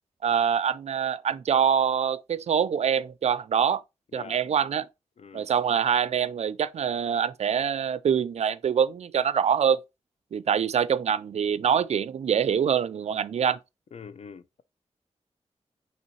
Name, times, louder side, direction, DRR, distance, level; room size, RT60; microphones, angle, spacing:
voice 1, 0.2-3.8 4.1-4.9 5.3-9.8 10.3-13.6, right 8 dB, 70° right, 0.4 m, -25 dB
voice 2, 5.2-5.5 13.9-14.6, left 6 dB, 65° left, 0.5 m, -44 dB
5.5 x 3.1 x 3.1 m
wide cardioid pair, 80°, 12 cm